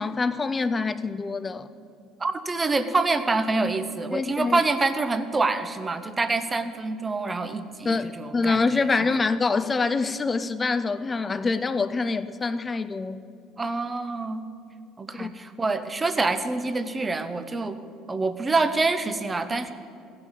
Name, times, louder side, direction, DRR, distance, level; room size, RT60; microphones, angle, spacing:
voice 1, 0.0-1.7 4.1-4.6 7.8-13.2 15.2-15.4, left 4 dB, 25° left, 0.5 m, -25 dB
voice 2, 2.2-8.8 13.6-14.4 15.0-17.8 18.1-19.7, right 3 dB, 20° right, 0.8 m, -26 dB
15.5 x 5.9 x 7.2 m
supercardioid pair, 95°, 0 cm